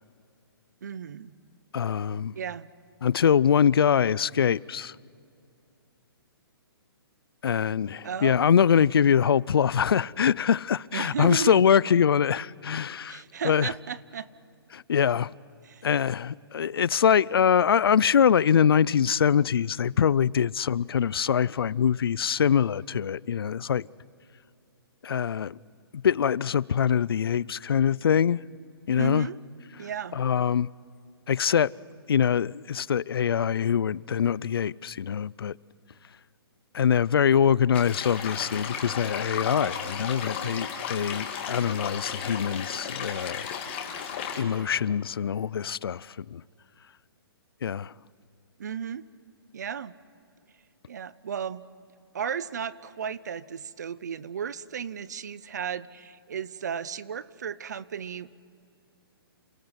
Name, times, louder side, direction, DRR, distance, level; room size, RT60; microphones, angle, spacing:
voice 1, 0.8-1.3 2.3-2.7 8.0-8.4 10.9-11.6 13.1-14.3 15.6-15.8 29.0-29.4 29.8-30.2 48.6-49.0 49.5-49.9 50.9-51.6 52.1-58.3, right 7 dB, 45° right, 0.7 m, -34 dB
voice 2, 1.7-2.3 3.0-4.9 7.4-13.7 14.7-15.3 15.8-23.9 25.0-25.6 25.9-28.4 28.9-29.3 30.1-30.7 31.3-31.7 32.1-35.5 36.7-43.5 44.4-46.4 47.6-47.9, left 8 dB, 65° left, 0.5 m, -24 dB
sound 1, 37.7-44.4, left 7 dB, 25° left, 2.5 m, -34 dB
29.0 x 17.5 x 8.0 m
hypercardioid pair, 180°, 13 cm